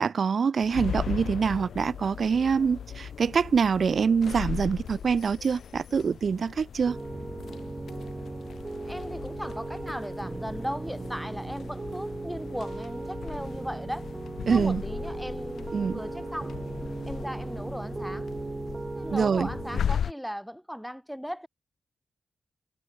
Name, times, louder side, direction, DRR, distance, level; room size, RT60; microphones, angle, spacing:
voice 1, 0.0-7.0 14.5-14.8 15.7-16.0 19.1-19.5, right 6 dB, 60° right, 0.3 m, -25 dB
sound 1, 0.6-20.1, left 8 dB, 85° left, 0.5 m, -38 dB
Piano, 6.9-19.8, right 2 dB, 25° right, 1.4 m, -37 dB
voice 2, 8.6-14.1 14.5-16.6 17.1-18.3 18.9-21.5, equal, ahead, 0.7 m, -37 dB
wide cardioid pair, 100°, 0 cm